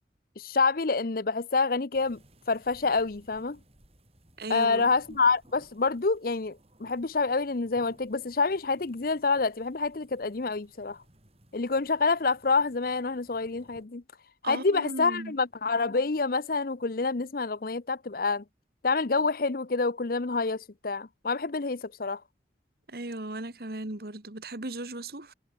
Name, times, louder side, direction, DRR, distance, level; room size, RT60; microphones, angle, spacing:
voice 1, 0.4-2.2 2.5-3.6 4.5-11.0 11.5-14.0 14.4-18.4 18.8-22.2, left 4 dB, 55° left, 0.7 m, -27 dB
sound 1, 1.9-13.9, right 1 dB, 35° right, 7.5 m, -60 dB
voice 2, 4.4-4.9 14.4-15.4 22.9-25.3, right 2 dB, 60° right, 2.1 m, -37 dB
head